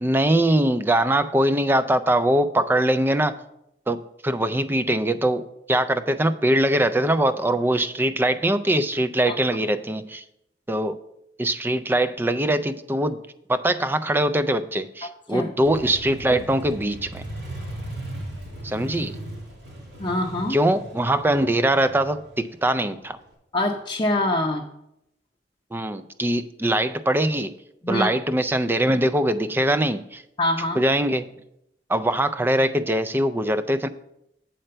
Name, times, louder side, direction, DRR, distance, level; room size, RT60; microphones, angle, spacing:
voice 1, 0.0-3.4 3.9-10.2 10.7-11.0 11.4-13.2 13.5-17.2 18.6-19.1 20.5-23.2 25.7-27.5 27.9-30.2 30.8-31.3 31.9-33.9, right 1 dB, 10° right, 12 dB, 0.3 m, -22 dB
Motorcycle, 15.6-23.3, right 1 dB, 90° right, 2.0 m, -37 dB
voice 2, 20.0-20.6 23.5-24.6 27.8-28.1 30.4-30.8, left 1 dB, 25° left, -1 dB, 0.6 m, -24 dB
7.7 x 4.4 x 6.7 m, 0.80 s
head